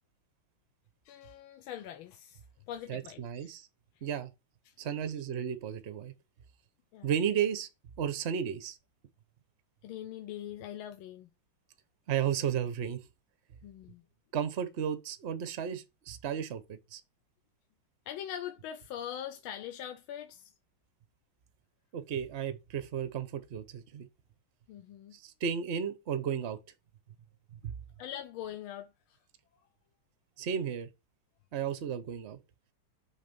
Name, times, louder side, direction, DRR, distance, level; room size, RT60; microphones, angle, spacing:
voice 1, 1.0-2.4 2.7-3.5 4.7-4.8 6.9-7.1 9.8-11.3 13.6-14.0 18.1-20.5 24.7-25.2 28.0-29.2, left 10 dB, 80° left, 1.4 m, -42 dB
voice 2, 2.9-3.7 4.0-4.3 4.8-6.1 7.0-7.7 8.0-8.8 12.1-13.0 14.3-17.0 21.9-24.1 25.1-26.6 27.6-27.7 30.4-30.9 31.5-32.4, right 8 dB, 65° right, 0.6 m, -33 dB
6.4 x 3.3 x 5.2 m
omnidirectional pair, 2.3 m